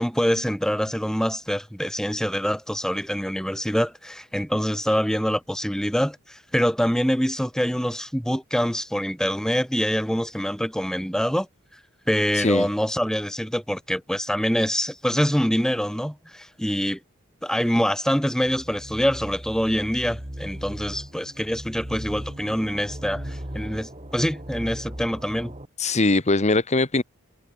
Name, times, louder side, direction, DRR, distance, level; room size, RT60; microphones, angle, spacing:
voice 1, 0.0-11.5 12.1-17.0 17.4-25.5, equal, 5° left, 7.8 m, -25 dB
voice 2, 12.3-12.7 25.8-27.0, left 2 dB, 30° left, 1.2 m, -21 dB
sound 1, 18.4-25.7, equal, 30° right, 5.3 m, -37 dB
head